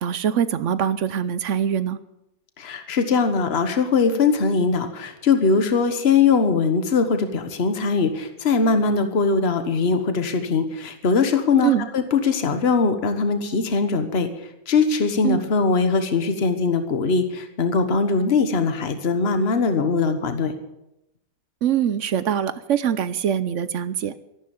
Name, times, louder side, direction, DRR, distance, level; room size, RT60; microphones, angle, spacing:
voice 1, 0.0-2.0 11.6-11.9 15.2-15.4 21.6-24.1, right 9 dB, 65° right, 15 dB, 1.0 m, -23 dB
voice 2, 2.6-14.3 14.7-20.5, left 4 dB, 50° left, 8 dB, 1.5 m, -21 dB
13.5 x 12.0 x 7.1 m, 0.87 s
omnidirectional pair, 1.4 m